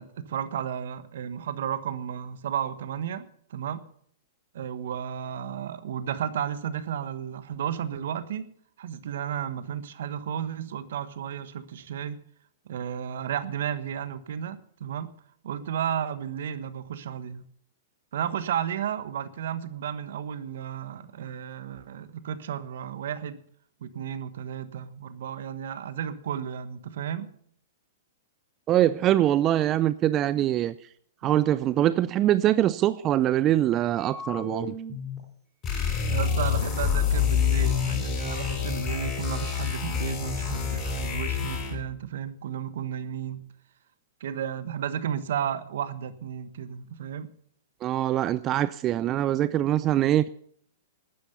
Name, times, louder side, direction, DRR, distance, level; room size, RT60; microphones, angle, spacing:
voice 1, 0.0-3.8 4.5-8.5 8.8-12.2 12.7-15.1 15.4-17.4 18.1-23.4 23.8-27.3 36.0-43.4 44.2-47.3, right 9 dB, 65° right, 1.3 m, -33 dB
voice 2, 28.7-30.7 31.2-34.7 47.8-50.3, right 12 dB, 30° right, 0.4 m, -23 dB
sound 1, 33.9-35.2 35.7-35.8 36.1-37.4, left 2 dB, 15° right, 5.7 m, -39 dB
sound 2, 35.6-41.9, left 7 dB, 30° left, 8.0 m, -27 dB
13.0 x 10.0 x 6.8 m
hypercardioid pair, 115°, 0 cm